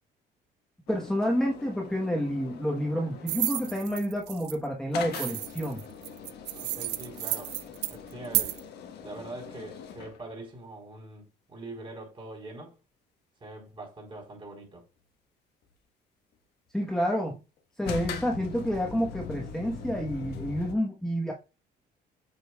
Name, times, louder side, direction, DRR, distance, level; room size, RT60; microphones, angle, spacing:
sound 1, 0.9-4.0 4.9-10.2 17.9-20.8, left 6 dB, 75° left, 1.3 m, -41 dB
voice 1, 0.9-5.8 16.7-17.4 17.8-21.3, equal, 5° left, 1.2 m, -29 dB
sound 2, 3.3-4.6 5.1-8.6, right 16 dB, 90° right, 0.5 m, -32 dB
voice 2, 6.6-7.6 7.9-8.6 9.0-12.7 13.4-14.8, right 2 dB, 30° right, 4.1 m, -43 dB
7.9 x 5.3 x 2.4 m
cardioid pair, 110°, 17 cm